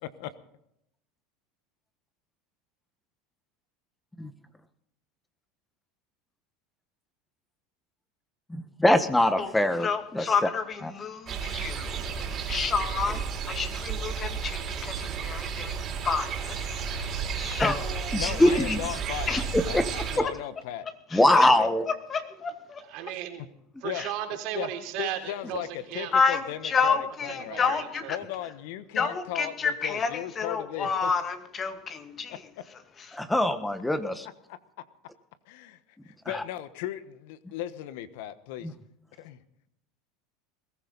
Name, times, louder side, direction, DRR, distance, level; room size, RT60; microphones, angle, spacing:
voice 1, 0.0-0.3 18.1-19.4 19.7-20.9 21.3-21.7 23.8-24.0 24.5-24.7 25.0-25.7 25.9-27.8 28.1-31.1 32.3-32.4 34.5-34.6 35.5-35.8 36.0-38.7 39.2-39.4, left 12 dB, 70° left, 1.2 m, -36 dB
voice 2, 8.8-9.9 10.1-10.2 17.6-17.7 18.1-18.8 19.7-19.8 21.1-21.8 33.1-34.3 36.2-36.4, left 1 dB, 10° left, 1.4 m, -22 dB
voice 3, 9.4-18.8 19.3-19.4 21.1-21.6 21.9-22.8 24.0-24.1 26.1-28.2 28.9-32.5 33.0-33.2, left 5 dB, 30° left, 2.2 m, -30 dB
sound 1, 11.3-20.2, right 6 dB, 40° right, 3.7 m, -32 dB
voice 4, 22.9-23.5 23.8-26.1 27.5-28.1, right 12 dB, 60° right, 3.4 m, -35 dB
21.5 x 15.0 x 4.1 m
supercardioid pair, 100°, 0 cm